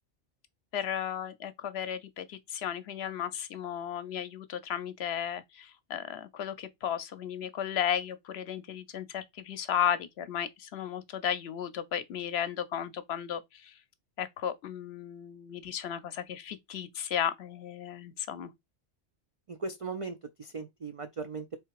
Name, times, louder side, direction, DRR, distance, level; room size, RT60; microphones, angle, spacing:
voice 1, 0.7-13.7 14.2-18.5, left 9 dB, 65° left, 0.8 m, -34 dB
voice 2, 19.5-21.6, right 4 dB, 60° right, 0.3 m, -38 dB
3.5 x 3.2 x 4.7 m
omnidirectional pair, 1.2 m